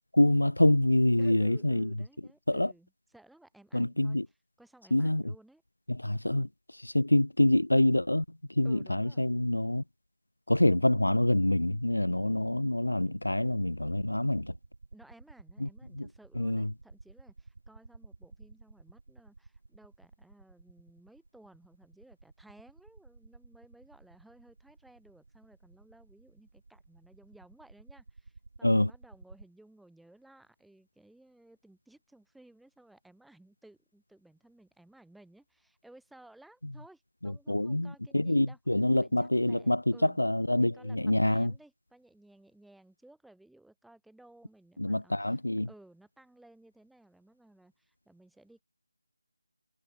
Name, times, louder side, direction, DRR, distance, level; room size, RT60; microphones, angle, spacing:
voice 1, 0.1-1.9 2.5-2.7 3.7-4.3 4.9-5.3 5.9-6.5 6.8-8.2 8.6-9.8 10.5-14.5 15.6-15.7 16.0-16.1 16.4-16.7 28.6-28.9 37.2-41.5 44.8-45.7, left 1 dB, 90° left, 0.5 m, -26 dB
voice 2, 1.2-4.2 4.6-5.6 8.6-9.3 12.1-12.6 14.9-38.6 39.0-40.2 40.5-48.6, right 1 dB, ahead, 7.4 m, -58 dB
sound 1, 11.7-29.5, right 3 dB, 55° right, 3.3 m, -54 dB
figure-of-eight pair, 165°, 0 cm